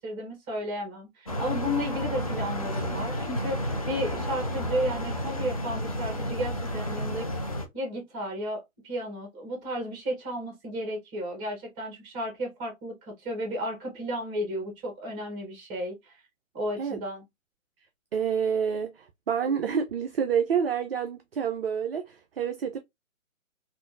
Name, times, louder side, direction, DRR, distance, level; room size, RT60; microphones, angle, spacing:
voice 1, 0.0-7.3 7.7-16.2 16.5-17.2, equal, 20° right, 1.3 m, -33 dB
sound 1, 1.3-7.7, equal, 30° left, 0.4 m, -31 dB
voice 2, 18.1-22.8, right 7 dB, 50° right, 0.4 m, -28 dB
3.4 x 2.5 x 2.4 m
hypercardioid pair, 145°, 41 cm